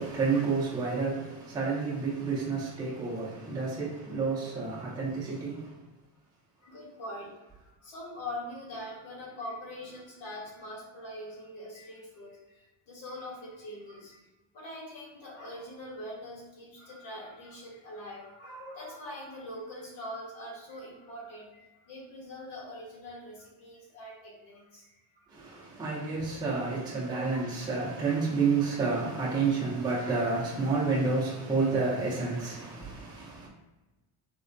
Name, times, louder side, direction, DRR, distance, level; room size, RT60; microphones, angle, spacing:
voice 1, 0.0-5.7 25.3-33.5, right 4 dB, 10° right, 0.5 m, -30 dB
voice 2, 6.6-7.3 7.6-14.2 14.5-24.9 25.2-25.3 27.1-27.5, left 1 dB, 75° left, 1.3 m, -43 dB
4.3 x 2.1 x 2.5 m
cardioid pair, 165°, 46 cm